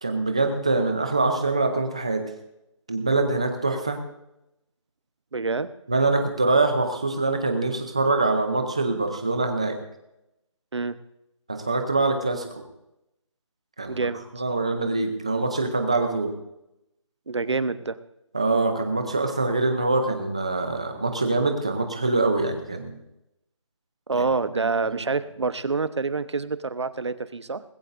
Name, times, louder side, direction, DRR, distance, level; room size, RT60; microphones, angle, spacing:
voice 1, 0.0-2.3 2.9-4.0 5.9-9.7 11.5-12.6 13.8-14.0 14.3-16.3 18.3-23.0 24.1-24.2 24.5-24.7, right 3 dB, 10° right, 6 dB, 0.6 m, -24 dB
voice 2, 5.3-5.7 10.7-11.0 13.9-14.2 17.3-18.0 24.1-27.6, right 4 dB, 60° right, 13 dB, 0.9 m, -27 dB
19.5 x 15.0 x 2.6 m, 0.86 s
figure-of-eight pair, 180°, 16 cm